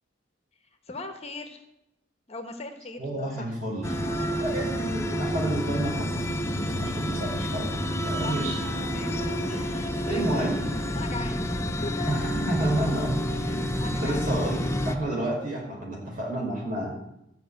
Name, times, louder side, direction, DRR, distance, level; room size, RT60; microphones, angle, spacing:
voice 1, 0.9-1.6 2.3-3.6 3.9-4.4 8.2-10.5 10.9-12.3 13.4-14.4 14.8-15.0, left 2 dB, 35° left, 6 dB, 1.1 m, -40 dB
voice 2, 3.0-3.9 4.3-8.6 10.1-10.7 12.1-13.2 14.0-16.9, right 1 dB, 45° right, -3 dB, 5.2 m, -30 dB
sound 1, 3.8-15.0, equal, 15° left, 0.8 m, -29 dB
13.5 x 5.5 x 9.1 m, 0.84 s
head